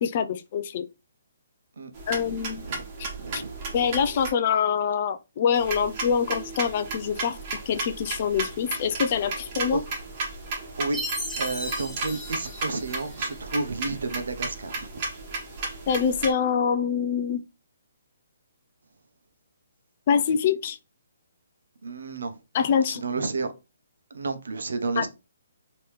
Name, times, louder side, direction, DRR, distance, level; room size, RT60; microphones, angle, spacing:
voice 1, 0.0-0.9 2.1-2.7 3.0-3.4 3.7-9.8 15.9-17.4 20.1-20.8 22.5-23.0 25.0-25.1, left 7 dB, 40° left, 0.4 m, -25 dB
sound 1, 1.9-4.3 5.5-16.3, right 3 dB, 30° right, 1.2 m, -34 dB
voice 2, 3.2-3.5 9.7-9.8 10.8-11.1 11.4-14.9 21.8-22.4 22.9-23.5 24.1-25.1, right 3 dB, 75° right, 0.8 m, -31 dB
Chime, 10.9-13.4, equal, 5° right, 0.9 m, -36 dB
3.4 x 3.0 x 3.1 m
hypercardioid pair, 160°, 0 cm